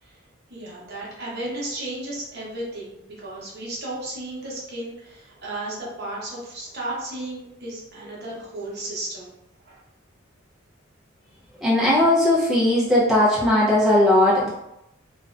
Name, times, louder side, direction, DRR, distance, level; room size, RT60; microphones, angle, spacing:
voice 1, 0.5-9.3 9.6-9.8, right 1 dB, 50° right, -5 dB, 0.8 m, -34 dB
voice 2, 11.6-14.5, left 1 dB, ahead, -8 dB, 0.6 m, -18 dB
2.5 x 2.2 x 2.4 m, 0.84 s
head